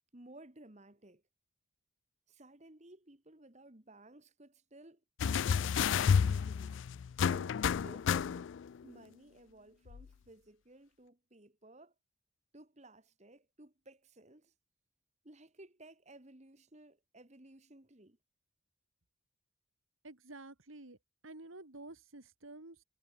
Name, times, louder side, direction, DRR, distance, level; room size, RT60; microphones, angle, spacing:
voice 1, 0.1-1.2 2.3-5.0 5.4-6.8 7.2-8.5 8.8-11.9 12.5-14.5 15.2-18.2, right 1 dB, 35° right, 1.7 m, -57 dB
sound 1, 5.2-8.7 9.9-10.0, left 7 dB, 60° left, 0.3 m, -30 dB
voice 2, 20.0-21.0 21.2-22.8, right 2 dB, 75° right, 2.5 m, -50 dB
head